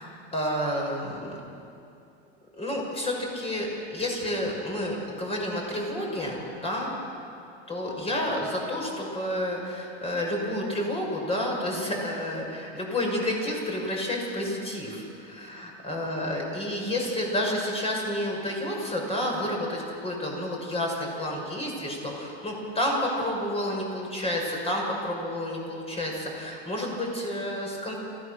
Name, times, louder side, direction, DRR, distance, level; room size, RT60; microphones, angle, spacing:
voice 1, 0.0-1.4 2.6-7.0 7.7-28.0, left 1 dB, 20° left, -1 dB, 6.5 m, -30 dB
26.5 x 16.5 x 6.6 m, 2.6 s
hypercardioid pair, 115°, 33 cm